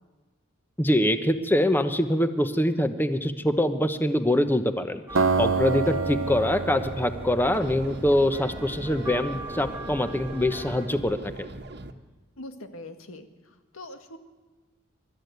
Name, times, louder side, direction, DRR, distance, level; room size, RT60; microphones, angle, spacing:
voice 1, 0.8-5.0 5.4-11.5, left 1 dB, 10° left, 9 dB, 1.0 m, -24 dB
sound 1, 5.1-10.9, right 1 dB, 10° right, 1.9 m, -40 dB
Acoustic guitar, 5.2-8.3, right 4 dB, 75° right, 0.9 m, -27 dB
voice 2, 5.7-6.0 12.4-14.2, left 2 dB, 90° left, 7 dB, 2.0 m, -42 dB
sound 2, 7.5-11.9, right 2 dB, 55° right, 1.4 m, -41 dB
26.5 x 13.5 x 9.4 m, 1.2 s
head